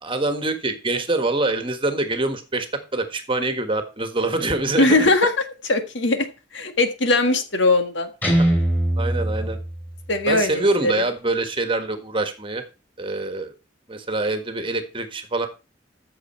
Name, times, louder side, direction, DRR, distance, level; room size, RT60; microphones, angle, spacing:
voice 1, 0.0-2.7 2.9-5.1 8.3-8.4 9.0-9.6 10.3-12.6 13.0-13.5 13.9-15.5, right 2 dB, 30° right, 8 dB, 1.5 m, -25 dB
voice 2, 4.8-5.3 5.7-6.3 6.5-8.1 10.1-10.9, left 2 dB, 70° left, 7 dB, 1.7 m, -20 dB
Guitar, 8.2-10.3, right 1 dB, 10° left, 4.0 m, -22 dB
14.0 x 6.7 x 4.4 m, 0.30 s
head